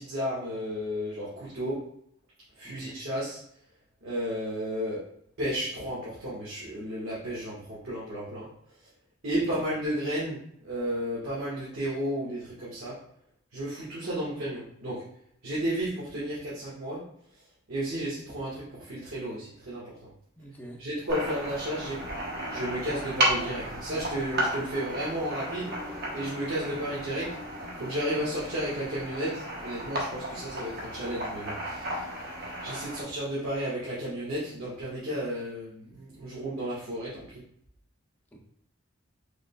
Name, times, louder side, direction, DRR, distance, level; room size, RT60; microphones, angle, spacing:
voice 1, 0.0-1.8 2.6-3.4 4.0-5.0 5.4-8.5 9.2-12.9 13.5-15.0 15.4-17.0 17.7-20.1 20.8-22.0 22.5-25.7 26.1-27.3 27.8-32.1 32.6-37.4, equal, 85° right, -8 dB, 1.4 m, -33 dB
voice 2, 2.6-3.0 9.4-9.7 20.4-20.9 38.3-38.4, right 1 dB, 10° left, 0 dB, 0.5 m, -47 dB
sound 1, 21.1-33.0, right 1 dB, 50° right, 1.0 m, -34 dB
4.9 x 3.4 x 2.2 m, 0.70 s
head